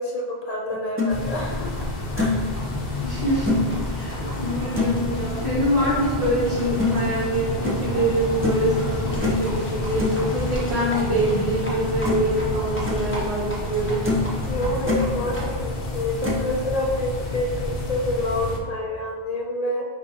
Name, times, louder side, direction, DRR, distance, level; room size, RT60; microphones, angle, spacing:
voice 1, 0.0-1.9 2.2-2.5 14.5-19.8, left 1 dB, 45° left, -1 dB, 0.6 m, -28 dB
sound 1, 0.7-1.1 1.7-1.8 2.2-2.5 3.4-3.6 4.7-5.0 6.8-6.9 7.6-7.8 8.4-8.7 9.2-9.5 10.0-10.2 11.6-11.7 12.0-12.3 12.6-13.0 13.6-13.7 14.0-14.3 14.6-15.0 16.2-16.5, left 3 dB, 15° right, 0.5 m, -24 dB
sound 2, 1.1-18.6, left 2 dB, 65° left, 0.9 m, -30 dB
Livestock farm animals working animals, 1.3-15.6, equal, 15° left, 0.8 m, -34 dB
voice 2, 3.0-3.5 3.8-14.1, right 1 dB, 75° right, -13 dB, 1.7 m, -25 dB
5.0 x 3.6 x 2.7 m, 1.5 s
omnidirectional pair, 1.1 m